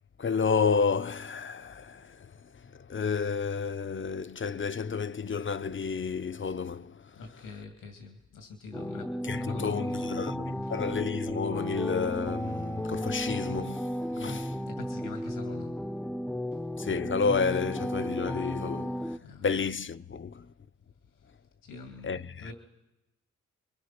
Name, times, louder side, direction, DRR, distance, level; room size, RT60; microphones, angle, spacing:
voice 1, 0.2-2.3 2.6-7.2 9.2-14.5 16.8-20.5 22.0-22.5, left 5 dB, 40° left, 0.8 m, -31 dB
voice 2, 7.1-10.3 10.6-10.7 14.2-15.8 19.2-19.4 21.6-22.5, left 4 dB, 85° left, 2.5 m, -45 dB
sound 1, 8.7-19.2, equal, 5° left, 0.8 m, -34 dB
28.0 x 22.5 x 5.9 m
cardioid pair, 55°, 31 cm